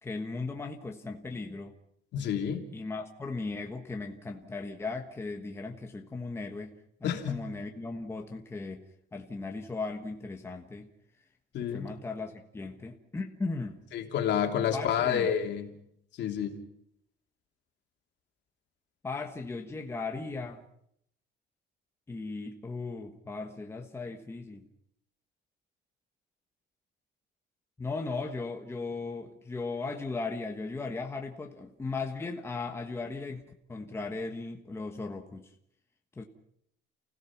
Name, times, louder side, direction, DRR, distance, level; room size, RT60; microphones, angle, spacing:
voice 1, 0.0-1.8 2.7-8.8 9.1-10.9 11.6-13.8 14.7-15.3 19.0-20.6 22.1-24.7 27.8-33.4 33.7-35.5 36.2-36.3, left 3 dB, 10° left, 3 dB, 1.4 m, -37 dB
voice 2, 2.1-2.6 7.0-7.4 11.5-11.9 13.9-15.7 16.2-16.6, left 8 dB, 60° left, 4 dB, 3.0 m, -29 dB
29.5 x 17.0 x 6.0 m, 0.75 s
cardioid pair, 180°, 20 cm